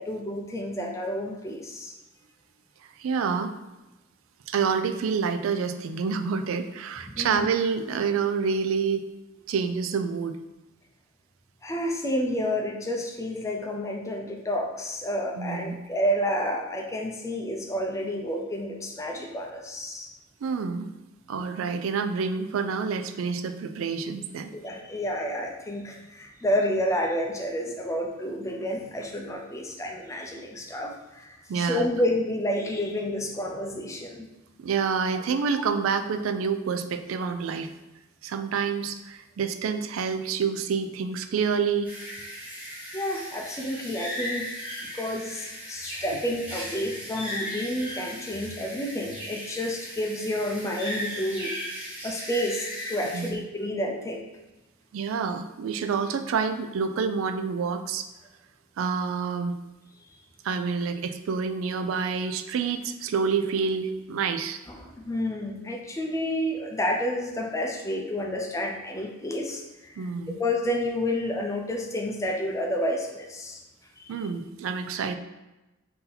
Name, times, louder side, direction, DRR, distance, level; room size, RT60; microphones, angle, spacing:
voice 1, 0.0-1.9 7.2-7.5 11.6-20.1 24.5-34.3 42.9-44.5 44.9-51.5 52.0-54.2 64.7-70.1 70.4-73.6 74.0-74.2, equal, 15° left, 1 dB, 0.4 m, -30 dB
voice 2, 3.0-3.5 4.5-9.0 9.5-10.4 15.4-15.8 20.4-20.9 21.3-24.6 31.5-31.9 34.6-37.7 38.2-41.9 53.1-53.4 54.9-58.1 58.8-59.6 60.4-64.6 70.0-70.4 74.1-75.2, right 5 dB, 80° right, 8 dB, 0.3 m, -28 dB
sound 1, 41.8-53.3, equal, 10° right, 0.9 m, -37 dB
4.0 x 2.7 x 4.0 m, 1.0 s
head